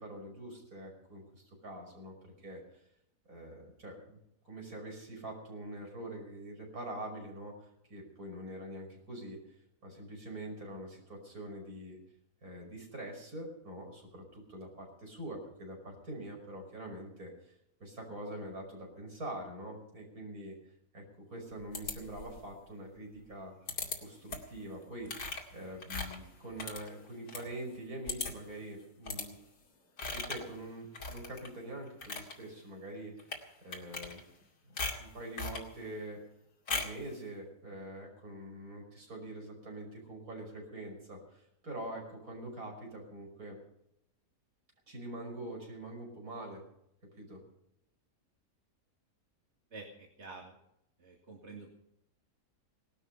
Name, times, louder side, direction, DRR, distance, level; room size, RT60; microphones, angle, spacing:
voice 1, 0.0-2.8 3.3-4.2 4.4-9.4 9.8-12.0 12.4-17.5 17.8-20.6 20.9-21.0 21.3-23.6 24.0-29.4 30.1-33.3 33.6-34.2 34.6-36.2 36.7-43.6 44.9-46.6 47.2-47.4, right 1 dB, 60° right, 1 dB, 6.1 m, -44 dB
sound 1, 21.7-22.4 23.7-24.0 24.3-24.6 25.1-27.5 27.8-27.9 28.1-28.5 29.1-29.3 30.0-30.5 30.9-31.5 31.9-32.3 33.2-33.4 33.7-34.4 34.8-35.7 36.7-37.0, left 3 dB, 80° left, 3.1 m, -38 dB
voice 2, 49.7-50.6 51.0-51.7, right 3 dB, 45° right, 0 dB, 2.4 m, -48 dB
19.0 x 12.5 x 5.6 m, 0.78 s
omnidirectional pair, 1.7 m